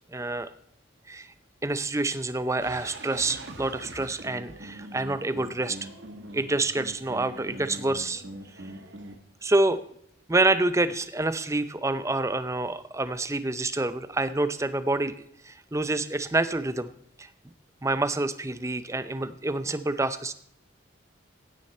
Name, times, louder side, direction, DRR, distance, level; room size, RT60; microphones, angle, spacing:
voice 1, 0.1-0.5 1.1-1.3 1.6-5.8 6.3-8.2 9.4-9.8 10.3-15.1 15.4-16.9 17.2-17.3 17.8-20.3, right 2 dB, 15° right, 13 dB, 0.6 m, -27 dB
sound 1, 2.6-9.1, right 1 dB, 65° right, 1.7 m, -43 dB
16.0 x 9.8 x 4.2 m, 0.67 s
head